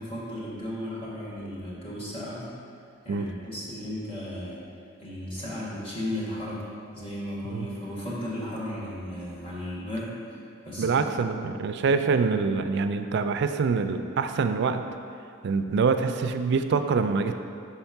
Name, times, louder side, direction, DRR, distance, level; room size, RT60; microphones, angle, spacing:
voice 1, 0.0-2.5 3.0-4.6 5.0-6.6 6.9-11.0 11.3-11.5, left 1 dB, 25° left, -7 dB, 1.5 m, -35 dB
voice 2, 10.8-14.8 15.4-17.3, right 5 dB, 55° right, 8 dB, 0.3 m, -25 dB
5.8 x 4.5 x 5.8 m, 2.5 s
head